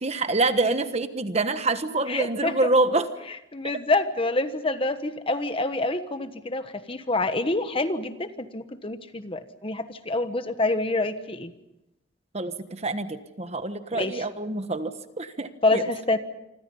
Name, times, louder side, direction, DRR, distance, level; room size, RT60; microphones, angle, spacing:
voice 1, 0.0-3.1 12.3-15.8, right 2 dB, 35° right, 10 dB, 1.3 m, -26 dB
voice 2, 2.1-2.6 3.5-11.5 13.9-14.2 15.6-16.2, left 2 dB, 30° left, 10 dB, 1.3 m, -27 dB
27.5 x 25.5 x 5.5 m, 0.90 s
head